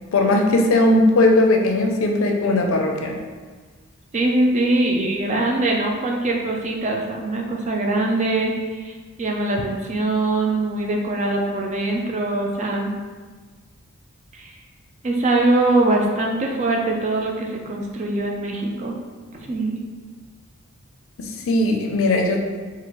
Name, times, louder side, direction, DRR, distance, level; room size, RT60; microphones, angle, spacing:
voice 1, 0.1-3.1 21.2-22.4, left 2 dB, 70° left, 2 dB, 0.5 m, -18 dB
voice 2, 4.1-13.0 14.3-14.6 15.0-19.0 19.3-19.8, right 2 dB, 30° right, 0 dB, 0.4 m, -22 dB
4.4 x 2.4 x 2.9 m, 1.4 s
head